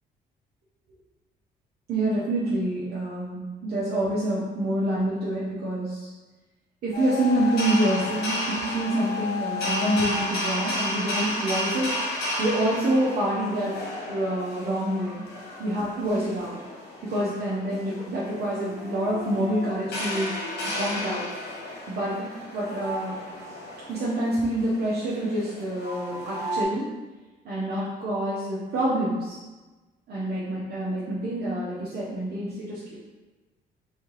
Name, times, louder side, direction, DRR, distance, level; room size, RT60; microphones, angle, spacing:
voice 1, 1.9-6.1 6.8-11.9 12.4-13.8 14.1-15.2 15.6-16.5 17.0-20.3 20.8-21.2 21.9-23.2 23.9-26.9 27.4-29.4 30.1-32.8, right 1 dB, 60° right, -7 dB, 0.9 m, -27 dB
sound 1, 6.9-26.6, left 1 dB, 65° left, 1.4 m, -33 dB
3.6 x 3.2 x 3.3 m, 1.2 s
cardioid pair, 90°, 18 cm